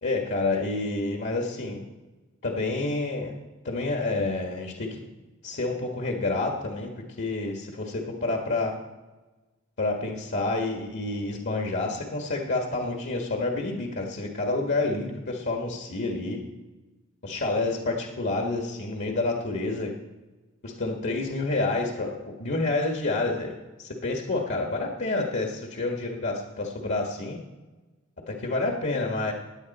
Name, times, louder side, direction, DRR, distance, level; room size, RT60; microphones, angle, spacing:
voice 1, 0.0-1.8 2.4-3.3 3.6-5.0 5.4-6.9 7.2-8.8 9.8-16.4 17.2-19.9 20.6-23.5 23.8-27.4 28.3-29.3, left 2 dB, 55° left, 1 dB, 1.6 m, -28 dB
17.0 x 10.0 x 4.2 m, 1.2 s
head